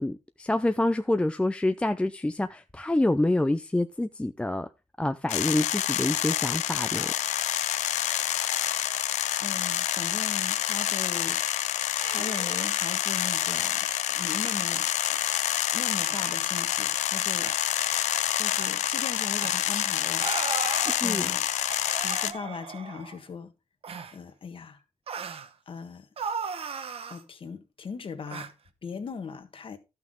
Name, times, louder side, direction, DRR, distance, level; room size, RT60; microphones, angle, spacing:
voice 1, 0.0-4.7 5.0-7.1 21.0-21.3, left 1 dB, 10° left, 0.5 m, -27 dB
sound 1, 5.3-22.3, left 12 dB, 85° left, 0.6 m, -27 dB
voice 2, 9.4-11.4 12.1-15.4 15.7-17.5 18.3-20.5 21.0-21.5 22.0-23.5 24.1-24.8 25.7-26.1 27.1-28.5 28.8-29.8, left 5 dB, 50° left, 1.4 m, -39 dB
sound 2, 12.0-12.7 13.5-13.8 14.4-14.5 14.8-15.1 16.0-16.4 17.4-17.6 18.6-18.7 19.4-19.6 20.2-21.0 21.7-23.2 23.8-24.2 25.1-25.5 26.2-27.2 28.3-28.5, right 6 dB, 55° right, 1.0 m, -37 dB
12.0 x 5.9 x 3.7 m
cardioid pair, 85°, 12 cm